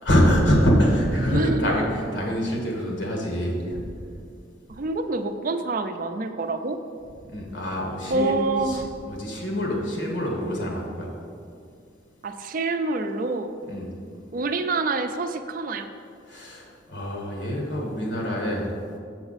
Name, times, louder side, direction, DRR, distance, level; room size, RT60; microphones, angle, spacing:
voice 1, 0.0-3.8 7.3-8.3 8.6-11.1 13.7-13.9 16.3-18.7, equal, 75° left, -1 dB, 1.6 m, -25 dB
voice 2, 1.3-1.7 4.7-6.8 8.1-8.9 12.2-13.6 14.3-15.9, right 3 dB, 45° right, 8 dB, 0.4 m, -27 dB
7.0 x 6.8 x 4.1 m, 2.3 s
head